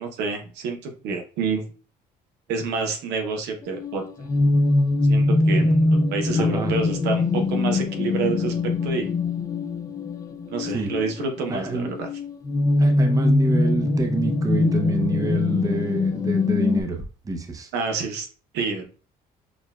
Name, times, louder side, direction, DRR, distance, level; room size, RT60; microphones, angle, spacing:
voice 1, 0.0-1.6 2.5-4.0 5.0-8.5 8.8-9.1 10.5-12.1 17.7-18.3 18.5-18.9, right 4 dB, 85° right, 4 dB, 0.8 m, -28 dB
sound 1, 3.6-16.8, left 2 dB, 20° left, 0.4 m, -22 dB
voice 2, 6.4-6.7 10.7-10.9 11.5-11.9 12.8-17.7, right 3 dB, 20° right, 5 dB, 0.6 m, -28 dB
6.2 x 2.2 x 2.3 m, 0.36 s
cardioid pair, 110°, 17 cm